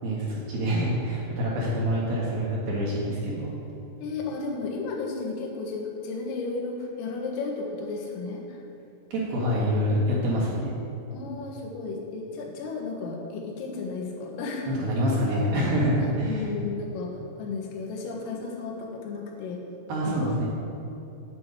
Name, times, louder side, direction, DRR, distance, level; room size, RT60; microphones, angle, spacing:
voice 1, 0.0-3.6 9.1-10.7 14.7-16.5 19.9-20.5, equal, 60° right, -5 dB, 2.8 m, -26 dB
voice 2, 4.0-8.6 11.1-14.7 16.0-19.6 20.0-20.4, left 4 dB, 80° left, 0 dB, 4.1 m, -34 dB
9.2 x 8.3 x 8.1 m, 2.9 s
omnidirectional pair, 5.9 m